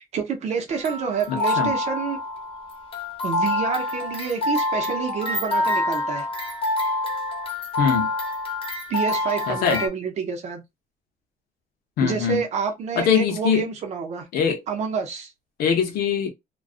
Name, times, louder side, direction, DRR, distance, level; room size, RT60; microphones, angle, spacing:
voice 1, 0.0-2.2 3.2-6.3 8.9-10.6 12.0-14.2 14.7-15.3, right 6 dB, 45° right, 0.6 m, -28 dB
sound 1, 0.7-9.9, left 2 dB, 35° left, 0.8 m, -26 dB
voice 2, 1.3-1.7 7.8-8.1 9.5-9.8 12.0-12.4 13.0-13.7 14.3-14.6 15.6-16.3, left 7 dB, 90° left, 0.6 m, -22 dB
2.4 x 2.2 x 2.3 m
cardioid pair, 175°, 15 cm